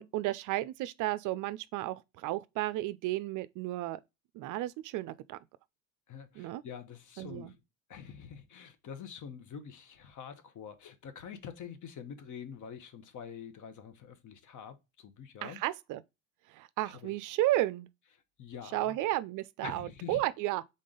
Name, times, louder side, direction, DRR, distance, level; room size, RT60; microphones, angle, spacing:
voice 1, 0.0-4.0 4.3-5.4 6.4-6.6 7.2-7.5 15.4-16.0 16.5-17.9 18.7-20.6, right 15 dB, 50° right, 0.4 m, -33 dB
voice 2, 6.1-7.6 7.9-15.6 16.9-17.1 18.4-19.0 19.6-20.2, left 7 dB, 45° left, 1.0 m, -46 dB
3.8 x 3.7 x 3.7 m
hypercardioid pair, 65°, 41 cm